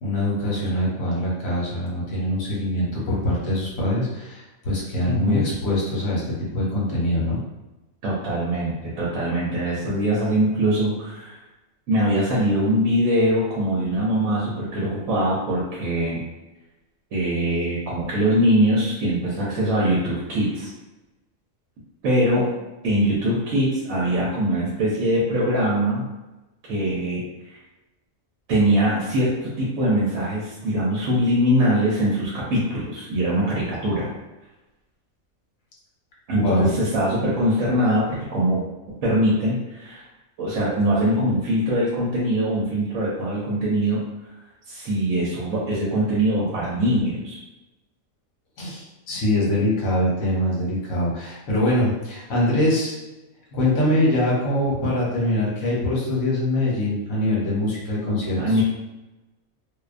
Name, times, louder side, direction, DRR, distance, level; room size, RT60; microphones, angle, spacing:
voice 1, 0.0-6.2 6.5-7.4 36.4-36.7 48.6-53.0 53.5-58.6, left 1 dB, 75° left, -5 dB, 1.2 m, -23 dB
voice 2, 5.0-5.5 8.0-11.4 11.9-16.2 17.1-20.7 22.0-22.5 22.8-26.0 26.7-27.2 27.5-27.6 28.5-34.1 36.3-40.0 40.4-44.0 44.7-47.4 58.4-58.6, equal, 70° right, -6 dB, 0.9 m, -22 dB
2.5 x 2.1 x 2.4 m, 1.1 s
omnidirectional pair, 1.5 m